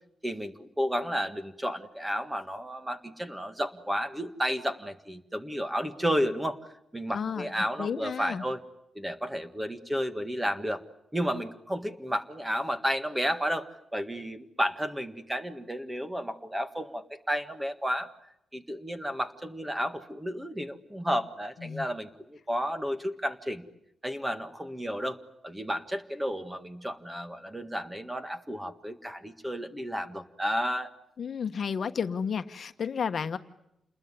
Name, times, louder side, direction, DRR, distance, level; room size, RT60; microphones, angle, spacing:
voice 1, 0.2-6.6 6.9-8.6 8.9-10.8 11.1-18.1 18.5-23.6 24.0-25.2 25.4-30.9, equal, 10° right, 9 dB, 1.7 m, -32 dB
voice 2, 7.1-8.4 21.6-21.9 31.2-33.4, left 6 dB, 50° left, 9 dB, 1.2 m, -32 dB
28.5 x 21.0 x 9.8 m, 0.81 s
wide cardioid pair, 125°, 0 cm